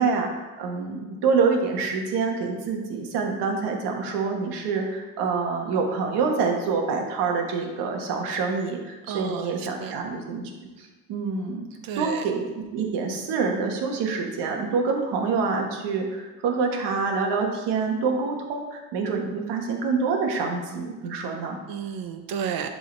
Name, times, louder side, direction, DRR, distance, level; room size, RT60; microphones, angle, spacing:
voice 1, 0.0-10.4 10.8-11.6 12.0-21.6, right 4 dB, 90° right, 2 dB, 1.4 m, -26 dB
voice 2, 9.1-10.0 11.8-12.2 21.7-22.7, right 8 dB, 60° right, 6 dB, 0.9 m, -32 dB
11.0 x 4.0 x 3.9 m, 1.2 s
cardioid pair, 145°, 39 cm